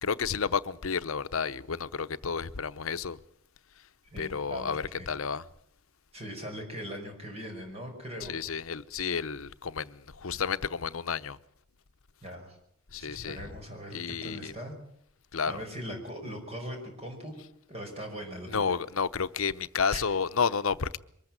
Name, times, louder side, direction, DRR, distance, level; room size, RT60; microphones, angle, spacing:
voice 1, 0.0-3.2 4.2-5.4 8.2-11.4 12.9-13.5 13.9-14.5 15.3-15.6 18.5-21.0, left 6 dB, 70° left, 0.8 m, -31 dB
voice 2, 4.1-5.1 6.1-8.3 12.2-12.6 13.0-14.8 15.5-17.3 17.7-18.7 19.9-20.0, equal, 30° right, 5.3 m, -40 dB
23.5 x 14.5 x 8.8 m
head